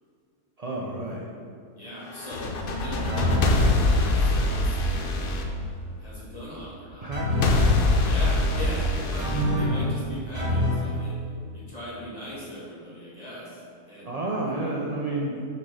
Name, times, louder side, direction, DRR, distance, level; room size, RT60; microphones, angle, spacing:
voice 1, 0.6-1.3 7.0-7.6 9.3-9.7 14.0-15.4, right 2 dB, 80° right, -3 dB, 0.3 m, -31 dB
voice 2, 1.8-5.2 6.0-7.1 8.0-9.3 9.5-11.1 11.5-13.6 13.9-14.2, equal, 25° left, -8 dB, 1.9 m, -38 dB
sound 1, 2.1-6.3 7.4-10.3, left 2 dB, 65° left, 0.5 m, -24 dB
sound 2, 3.1-3.6 7.1-7.7 9.2-9.9 10.3-10.9, left 1 dB, 35° right, 1.4 m, -25 dB
6.2 x 4.3 x 5.4 m, 2.3 s
omnidirectional pair, 1.6 m